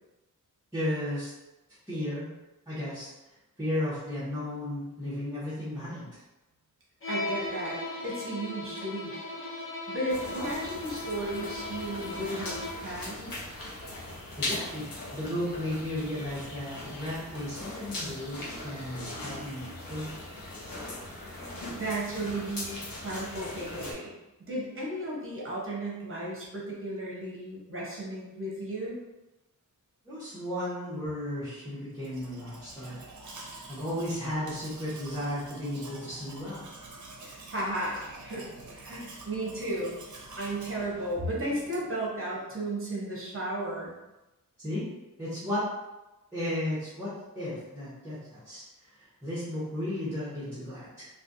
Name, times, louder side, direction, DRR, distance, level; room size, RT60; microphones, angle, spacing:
voice 1, 0.7-1.3 1.9-2.3 2.7-3.1 3.6-6.2 14.4-19.6 19.9-20.1 30.0-33.0 33.7-36.6 44.6-44.8 45.2-45.6 46.3-48.6 48.9-51.1, left 1 dB, 10° right, -12 dB, 1.1 m, -34 dB
Bowed string instrument, 7.0-13.0, left 2 dB, 40° left, 0.6 m, -37 dB
voice 2, 7.1-9.1 9.9-13.3 21.2-24.1 24.5-29.0 37.2-38.5 38.7-39.9 40.4-43.9, right 1 dB, 40° right, -5 dB, 0.9 m, -34 dB
sound 1, 10.1-23.9, left 1 dB, 90° left, 0.8 m, -40 dB
Domestic sounds home sounds, 31.9-42.0, right 2 dB, 60° right, 0.6 m, -47 dB
3.2 x 2.3 x 2.6 m, 1.0 s
wide cardioid pair, 135°, 34 cm